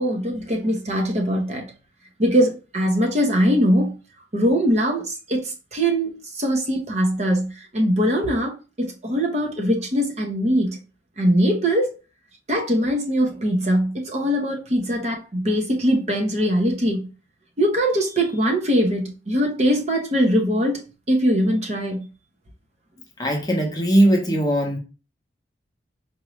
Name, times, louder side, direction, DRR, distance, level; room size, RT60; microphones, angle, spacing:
voice 1, 0.0-1.7 2.2-3.9 4.3-10.8 11.2-11.9 12.5-17.1 17.6-22.1, equal, 35° right, 0.8 m, -21 dB
voice 2, 23.2-24.8, right 1 dB, 20° left, 0.7 m, -19 dB
4.6 x 2.5 x 3.0 m
head